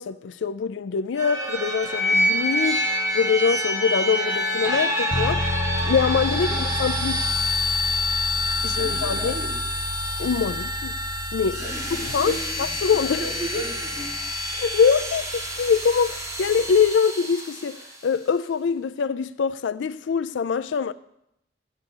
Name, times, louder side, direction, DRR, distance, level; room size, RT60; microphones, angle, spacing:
voice 1, 0.0-2.8 3.1-5.4 5.8-7.2 8.6-9.4 10.2-10.9 11.3-11.6 12.0-13.2 14.6-17.8 18.0-20.9, left 6 dB, 90° left, 0.4 m, -24 dB
sound 1, 1.2-17.9, left 1 dB, 15° right, 1.5 m, -27 dB
sound 2, 5.1-17.0, left 1 dB, 30° left, 0.6 m, -33 dB
voice 2, 6.3-6.7 8.5-9.5 11.6-12.8 13.2-14.1, equal, ahead, 3.4 m, -35 dB
11.0 x 8.1 x 7.2 m
head